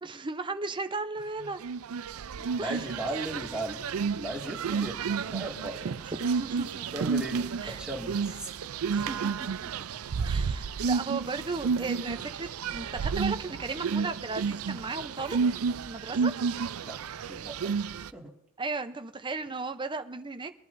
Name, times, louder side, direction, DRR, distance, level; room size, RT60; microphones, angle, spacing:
voice 1, 0.0-1.6 2.4-2.9 6.0-7.0 7.6-7.8 8.9-9.7 10.2-15.4 15.8-16.3 18.6-20.5, right 3 dB, 25° right, 8 dB, 0.6 m, -36 dB
sound 1, 1.6-18.1, right 5 dB, 85° right, 0.5 m, -31 dB
voice 2, 2.5-3.8 4.1-6.0 6.9-8.5 16.8-17.8 18.1-18.3, right 1 dB, 5° right, -2 dB, 2.1 m, -37 dB
23.0 x 11.0 x 2.6 m, 0.84 s
head